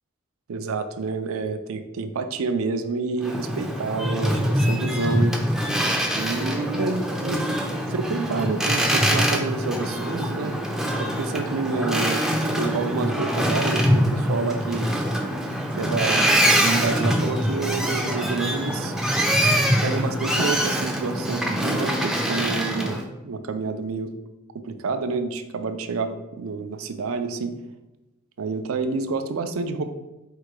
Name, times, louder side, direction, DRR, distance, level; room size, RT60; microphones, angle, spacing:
voice 1, 0.5-5.3 6.1-7.4 7.9-10.6 11.0-12.2 12.5-14.9 15.8-18.9 19.5-19.6 19.8-24.1 24.5-27.5 28.4-29.9, right 4 dB, 90° right, 8 dB, 0.4 m, -28 dB
Boat Water vehicle, 3.2-23.0, equal, ahead, 0.4 m, -24 dB
4.4 x 2.2 x 4.7 m, 1.0 s
head